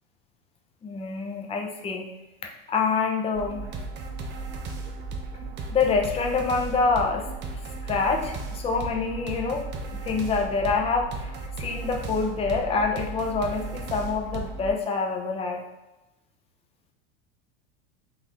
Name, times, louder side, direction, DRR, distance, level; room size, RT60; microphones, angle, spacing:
voice 1, 0.8-2.0 2.7-3.7 5.7-7.3 7.8-11.3 11.6-15.6, left 4 dB, 20° left, 2 dB, 0.5 m, -26 dB
sound 1, 3.3-14.7, right 3 dB, 35° right, 0.6 m, -35 dB
4.0 x 2.5 x 2.9 m, 0.98 s
supercardioid pair, 105°, 31 cm